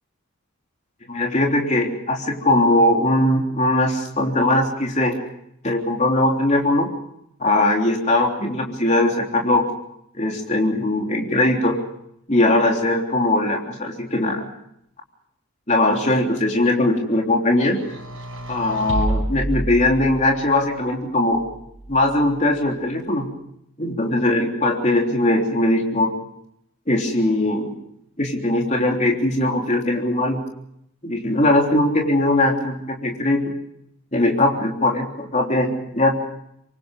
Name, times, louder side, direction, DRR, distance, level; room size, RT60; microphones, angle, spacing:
voice 1, 1.1-5.2 5.6-6.9 7.4-9.7 10.2-11.8 12.3-14.5 15.7-17.8 18.5-21.4 21.9-23.3 23.8-26.1 26.9-27.7 28.2-30.4 31.0-33.5 34.1-36.2, left 1 dB, 30° left, 1 dB, 3.4 m, -20 dB
sound 1, 17.7-20.4 21.3-22.3, right 1 dB, 65° right, 5.1 m, -29 dB
26.0 x 23.5 x 5.2 m, 0.76 s
head